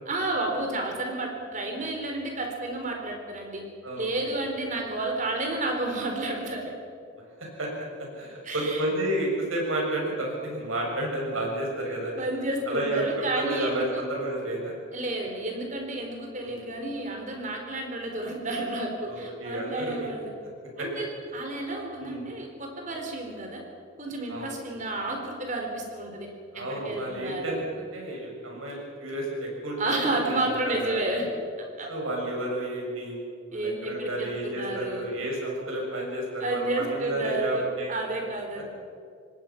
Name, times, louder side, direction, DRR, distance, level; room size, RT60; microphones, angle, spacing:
voice 1, 0.1-3.6 4.0-6.7 8.4-8.8 12.2-14.0 14.9-20.3 20.8-21.1 21.3-23.6 24.0-26.3 26.5-27.6 29.8-31.3 31.6-31.9 33.5-35.1 36.4-37.6 37.9-38.7, right 2 dB, 35° right, 2 dB, 4.1 m, -31 dB
voice 2, 3.8-4.4 7.6-7.7 8.0-12.1 12.7-14.7 16.4-16.6 19.1-20.1 20.8-20.9 22.0-22.2 24.3-24.5 26.5-31.0 31.9-33.1 33.5-37.9, right 1 dB, 80° right, -2 dB, 7.5 m, -31 dB
26.0 x 19.5 x 6.0 m, 2.2 s
head